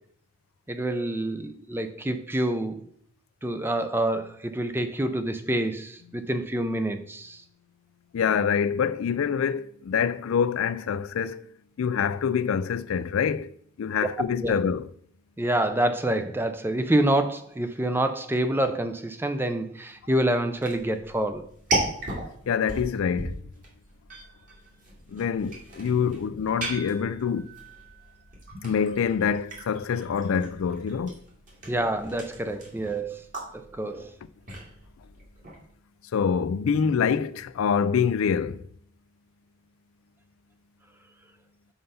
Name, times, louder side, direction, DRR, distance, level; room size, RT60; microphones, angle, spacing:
voice 1, 0.7-2.8 3.4-7.4 14.4-14.6 15.4-21.5 31.7-33.2 33.5-34.1, right 1 dB, 10° right, 0.5 m, -27 dB
voice 2, 8.1-11.5 11.8-14.9 22.5-23.4 25.1-27.5 28.6-31.2 36.1-38.6, left 7 dB, 75° left, 0.4 m, -26 dB
sound 1, 20.6-35.7, right 2 dB, 40° right, 2.4 m, -37 dB
5.6 x 5.4 x 5.5 m
head